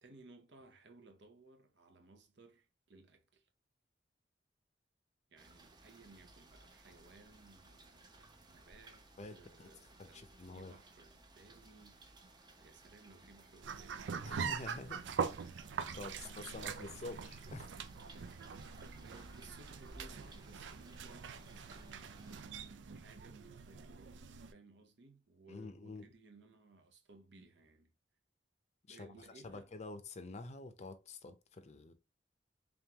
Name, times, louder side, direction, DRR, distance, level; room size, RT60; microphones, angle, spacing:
voice 1, 0.0-3.5 5.3-8.2 8.5-12.0 12.6-15.2 15.9-17.0 19.0-27.9 28.9-29.7, right 3 dB, 70° right, 0.8 m, -60 dB
sound 1, 5.4-22.4, right 2 dB, 25° right, 0.7 m, -59 dB
voice 2, 9.2-9.7 10.0-10.7 14.2-15.0 15.4-15.5 15.9-17.7 25.5-26.0 28.9-29.1 29.4-31.9, left 3 dB, 40° left, 0.5 m, -48 dB
sound 2, 13.6-24.5, right 6 dB, 90° right, 0.4 m, -43 dB
3.6 x 3.5 x 2.8 m
head